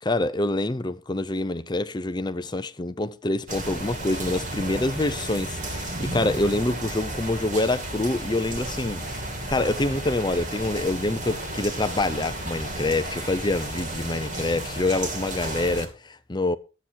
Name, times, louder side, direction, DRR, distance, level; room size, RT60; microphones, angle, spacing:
voice 1, 0.0-16.6, left 2 dB, 20° left, 0.6 m, -26 dB
sound 1, 3.5-15.9, right 1 dB, 40° right, 2.3 m, -33 dB
13.0 x 8.9 x 4.6 m
head